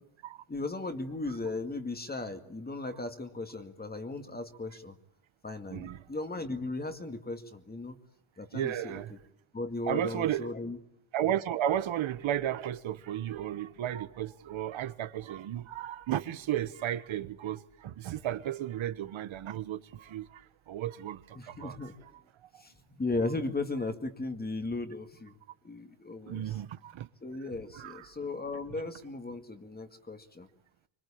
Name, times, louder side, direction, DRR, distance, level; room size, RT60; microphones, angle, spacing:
voice 1, 0.5-5.0 5.4-8.0 8.4-9.2 9.5-10.8 21.4-21.9 22.6-25.4 25.6-26.6 27.2-30.5, left 2 dB, 20° left, 2.1 m, -36 dB
voice 2, 8.5-9.1 9.9-10.5 11.1-21.8 22.4-22.6 26.3-27.1 27.7-28.1, right 11 dB, 75° right, 1.5 m, -34 dB
25.5 x 24.0 x 8.7 m
cardioid pair, 140°, 47 cm